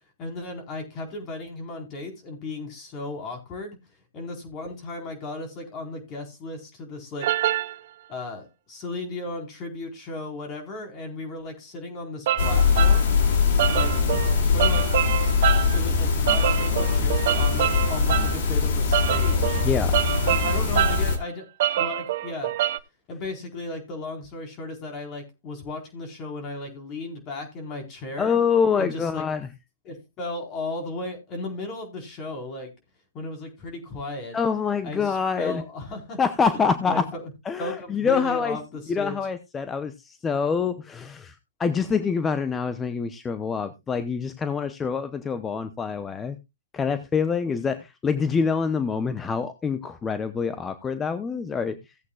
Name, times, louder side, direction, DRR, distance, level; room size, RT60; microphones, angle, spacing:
voice 1, 0.2-3.8 4.1-7.3 8.1-13.1 13.7-14.0 14.4-14.9 15.7-19.6 20.2-21.4 21.8-22.6 23.1-28.4 28.8-29.2 29.8-32.7 33.1-34.4 34.8-36.2 36.5-37.3 37.6-39.2 51.7-51.8, left 2 dB, 30° left, 3 dB, 4.2 m, -35 dB
sound 1, 7.2-7.8 12.3-13.0 13.6-15.8 16.3-18.4 18.9-21.1 21.6-22.8, right 12 dB, 50° right, 0.7 m, -26 dB
sound 2, 12.4-21.2, left 5 dB, 55° left, 2.7 m, -22 dB
voice 2, 19.6-20.0 28.2-29.5 34.3-35.6 36.2-37.0 37.5-38.6 38.9-46.4 46.7-51.8, left 6 dB, 15° left, 10 dB, 0.8 m, -26 dB
17.0 x 8.2 x 2.4 m, 0.23 s
hypercardioid pair, 140°, 0 cm